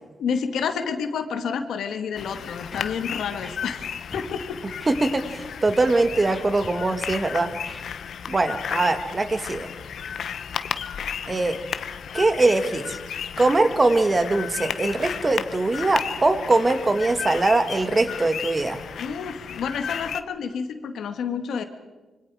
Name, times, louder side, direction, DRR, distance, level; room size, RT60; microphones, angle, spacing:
voice 1, 0.2-3.9 4.1-4.6 19.0-21.6, left 6 dB, 90° left, 8 dB, 1.9 m, -29 dB
sound 1, 2.2-20.2, left 8 dB, 70° left, 1.1 m, -34 dB
Scratching (performance technique), 2.7-2.9 3.2-3.8 4.1-4.3 4.8-4.9 5.5-5.7 6.1-7.1 7.5-7.8, left 2 dB, 10° left, 4.4 m, -42 dB
voice 2, 4.9-7.5 8.3-9.7 11.3-11.6 12.1-13.0 13.4-18.8, right 2 dB, 25° right, 9 dB, 1.6 m, -22 dB
26.5 x 25.0 x 4.9 m, 1.2 s
wide cardioid pair, 125°, 0 cm